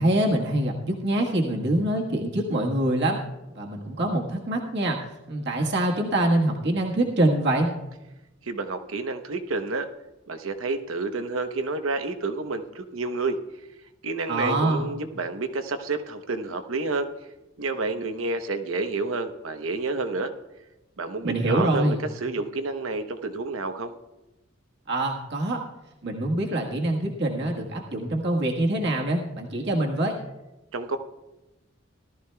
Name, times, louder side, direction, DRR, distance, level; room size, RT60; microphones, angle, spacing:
voice 1, 0.0-3.2 3.5-5.0 5.3-7.7 14.3-14.9 21.2-22.0 24.9-25.6 26.0-30.1, right 1 dB, 60° right, -1 dB, 1.4 m, -24 dB
voice 2, 8.4-9.9 10.3-13.4 14.0-17.1 17.6-20.3 21.0-23.9 30.7-31.0, right 3 dB, 85° right, 7 dB, 0.9 m, -29 dB
18.0 x 13.0 x 2.3 m, 1.0 s
head